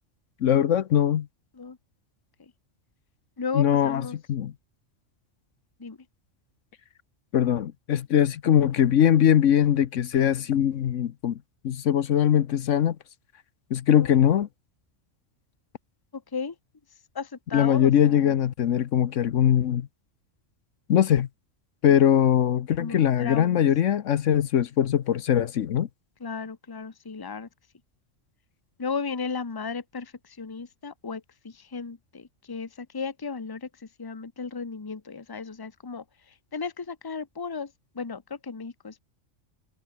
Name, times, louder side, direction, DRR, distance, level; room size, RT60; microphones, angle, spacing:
voice 1, 0.4-1.3 3.5-4.0 4.3-4.5 7.3-11.4 11.6-13.0 13.7-14.5 17.5-19.9 20.9-21.3 21.8-25.9, left 10 dB, 70° left, 1.2 m, -21 dB
voice 2, 3.4-4.2 5.8-6.0 13.9-14.1 16.1-16.5 17.1-18.3 22.8-23.6 26.2-27.5 28.8-36.0 36.5-39.0, left 5 dB, 20° left, 0.9 m, -35 dB
omnidirectional pair, 1.3 m